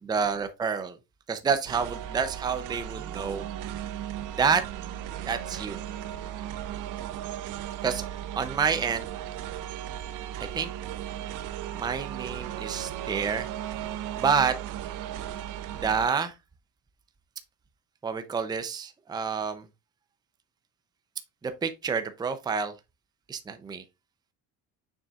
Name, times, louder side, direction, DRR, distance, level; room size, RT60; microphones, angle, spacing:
voice 1, 0.0-1.0 1.3-3.4 4.4-4.6 5.3-5.8 7.8-8.1 8.4-9.1 10.4-10.7 11.7-13.5 14.2-14.6 15.8-16.4 18.0-19.7 21.4-22.7 23.3-23.8, right 6 dB, 10° right, 0.5 m, -28 dB
sound 1, 1.7-16.1, right 11 dB, 65° right, 0.7 m, -36 dB
7.0 x 6.2 x 2.4 m
cardioid pair, 165°, 35 cm